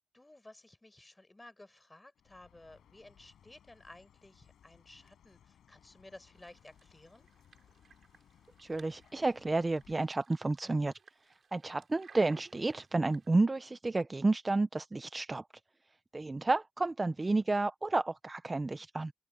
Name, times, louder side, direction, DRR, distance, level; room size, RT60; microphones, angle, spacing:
voice 1, 0.1-7.3, left 2 dB, 15° left, 4.5 m, -55 dB
Chirp tweet, 2.2-10.0, left 9 dB, 85° left, 5.7 m, -64 dB
sound 1, 6.3-13.3, right 5 dB, 50° right, 6.0 m, -61 dB
voice 2, 8.6-10.9 11.5-15.4 16.1-19.1, right 2 dB, 25° right, 0.6 m, -31 dB
cardioid pair, 100°, 0 cm